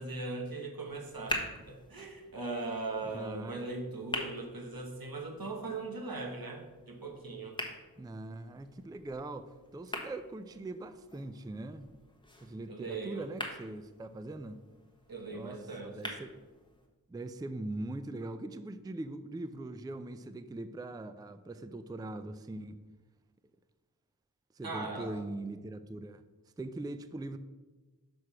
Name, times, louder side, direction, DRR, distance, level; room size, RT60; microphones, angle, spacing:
voice 1, 0.0-7.6 12.7-13.3 15.1-16.2 24.6-25.2, right 3 dB, 80° right, 1 dB, 1.3 m, -39 dB
sound 1, 0.9-16.9, equal, 15° left, 1.2 m, -45 dB
voice 2, 3.0-3.6 4.2-4.3 8.0-11.9 12.4-14.6 15.3-16.3 17.1-22.8 24.5-26.2 26.6-27.4, right 2 dB, 10° right, 11 dB, 0.3 m, -41 dB
6.2 x 4.8 x 5.7 m, 1.2 s
wide cardioid pair, 55°, 35 cm